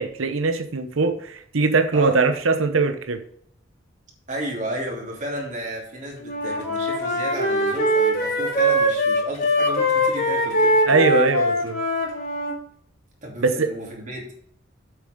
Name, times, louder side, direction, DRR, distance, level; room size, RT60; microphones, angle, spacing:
voice 1, 0.0-3.2 10.9-11.8 13.4-13.7, right 3 dB, 80° right, 8 dB, 0.9 m, -21 dB
voice 2, 4.3-11.0 13.2-14.3, right 1 dB, 40° right, -2 dB, 2.9 m, -33 dB
Wind instrument woodwind instrument, 6.2-12.5, equal, 50° left, 3.3 m, -22 dB
8.2 x 7.3 x 5.2 m, 0.65 s
head